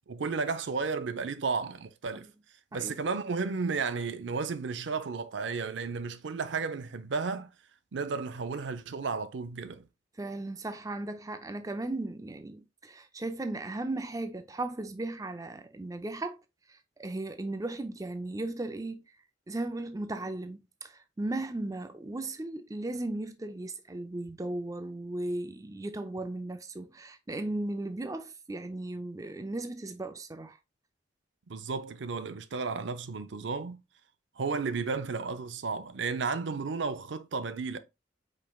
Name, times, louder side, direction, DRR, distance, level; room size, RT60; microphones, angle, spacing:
voice 1, 0.1-2.3 2.7-7.5 7.9-9.9 31.5-33.8 34.4-37.8, right 4 dB, 75° right, 0.5 m, -33 dB
voice 2, 10.2-16.4 16.7-19.0 19.5-30.6, right 2 dB, 20° right, 0.4 m, -36 dB
5.2 x 4.3 x 2.3 m
head